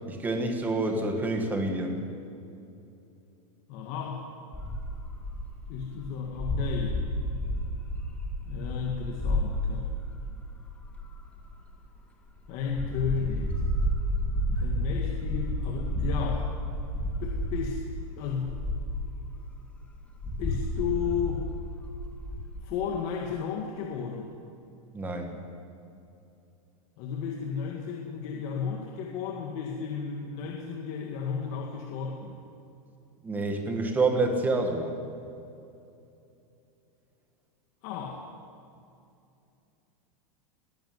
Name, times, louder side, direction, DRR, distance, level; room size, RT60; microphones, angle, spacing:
voice 1, 0.1-2.0 24.9-25.3 33.2-34.9, right 2 dB, 10° right, 4 dB, 2.1 m, -27 dB
voice 2, 3.7-4.2 5.7-7.0 8.5-9.9 12.5-13.6 14.5-16.5 17.2-17.8 18.2-18.6 20.4-21.5 22.6-24.3 27.0-32.4 37.8-38.2, left 6 dB, 35° left, 0 dB, 2.1 m, -33 dB
sound 1, 4.5-11.7 12.3-17.8 18.2-19.2 19.9-22.8, left 1 dB, 5° left, 2.3 m, -31 dB
21.0 x 16.0 x 9.7 m, 2.7 s
supercardioid pair, 170°, 18 cm